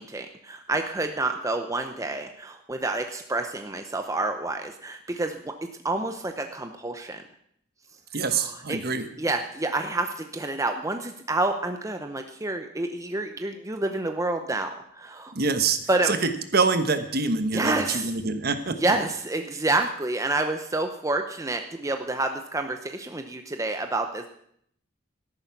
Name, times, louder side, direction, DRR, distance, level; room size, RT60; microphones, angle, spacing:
voice 1, 0.0-5.5 5.8-7.2 8.2-8.3 8.7-8.8 9.2-15.3 15.9-16.1 17.5-18.1 18.8-24.3, right 2 dB, 15° right, 6 dB, 0.7 m, -28 dB
voice 2, 8.1-9.1 15.3-15.8 16.0-16.2 16.5-18.8, right 4 dB, 50° right, 9 dB, 1.2 m, -25 dB
13.0 x 11.0 x 5.9 m, 0.68 s
head